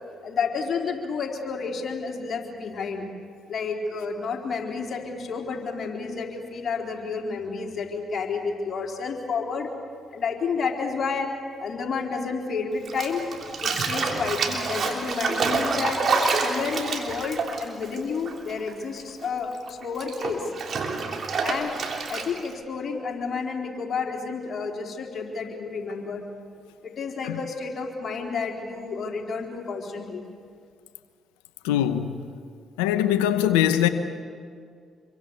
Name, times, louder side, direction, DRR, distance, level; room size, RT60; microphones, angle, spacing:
voice 1, 0.2-3.1 3.5-9.7 10.1-11.3 11.6-13.2 13.6-16.0 16.4-20.5 21.4-21.8 22.1-26.2 26.8-30.2, left 5 dB, 50° left, 4.1 m, -30 dB
Bathtub (filling or washing), 12.9-18.7 19.0-22.5, right 4 dB, 55° right, 3.2 m, -28 dB
voice 2, 31.6-32.2 32.8-33.9, left 11 dB, 85° left, 0.8 m, -22 dB
26.5 x 23.5 x 7.0 m
hypercardioid pair, 45°, 0 cm